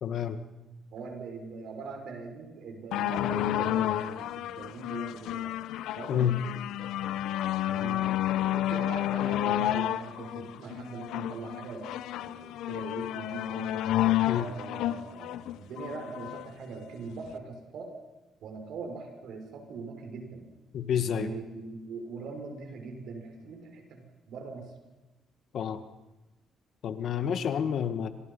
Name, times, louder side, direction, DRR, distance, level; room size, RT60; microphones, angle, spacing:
voice 1, 0.0-0.4 6.1-6.4 14.3-14.5 20.7-21.3 25.5-25.8 26.8-28.1, left 9 dB, 70° left, 10 dB, 1.9 m, -29 dB
voice 2, 0.9-5.6 5.9-6.6 7.7-8.0 8.4-11.9 12.2-13.9 14.2-17.9 18.4-20.5 21.0-24.7, right 4 dB, 75° right, 4 dB, 6.2 m, -41 dB
sound 1, 2.9-16.5 17.2-17.3, left 13 dB, 90° left, 0.9 m, -30 dB
27.5 x 25.5 x 5.7 m, 1.1 s
cardioid pair, 90°, 0 cm